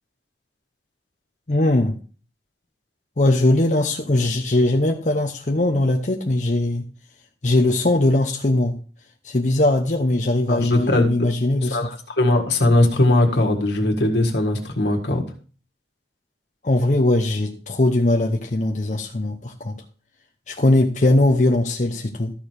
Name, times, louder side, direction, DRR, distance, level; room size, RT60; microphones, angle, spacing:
voice 1, 1.5-1.9 3.2-6.8 7.4-8.7 9.2-11.8 16.6-19.7 20.5-22.3, left 1 dB, 45° left, 2 dB, 0.8 m, -20 dB
voice 2, 10.5-11.1 11.6-15.2, left 1 dB, 80° left, 2 dB, 1.7 m, -19 dB
13.0 x 4.5 x 4.8 m, 0.37 s
head